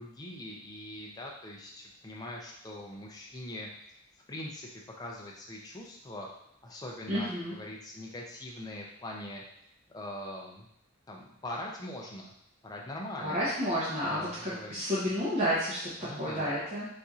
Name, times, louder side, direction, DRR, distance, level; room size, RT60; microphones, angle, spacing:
voice 1, 0.0-4.0 4.3-6.3 6.6-9.4 9.9-10.7 11.1-12.3 12.6-13.4 14.0-14.8 16.0-16.5, left 1 dB, 15° left, -2 dB, 0.4 m, -42 dB
voice 2, 7.1-7.5 13.2-15.9 16.2-16.9, equal, 30° right, -10 dB, 0.7 m, -30 dB
4.2 x 2.7 x 2.4 m, 0.77 s
head